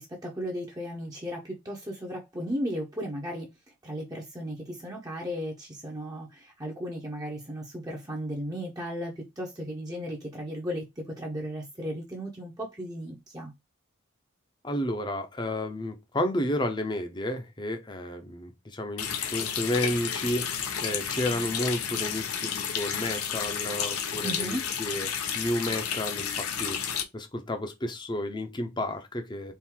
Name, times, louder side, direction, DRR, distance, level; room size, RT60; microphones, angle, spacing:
voice 1, 0.0-3.5 3.8-13.5 24.2-24.6, equal, 15° right, 0.8 m, -35 dB
voice 2, 14.6-29.5, left 1 dB, 20° left, 0.7 m, -32 dB
Water tap faucet, 19.0-27.0, left 7 dB, 90° left, 0.9 m, -31 dB
4.5 x 2.6 x 3.7 m
head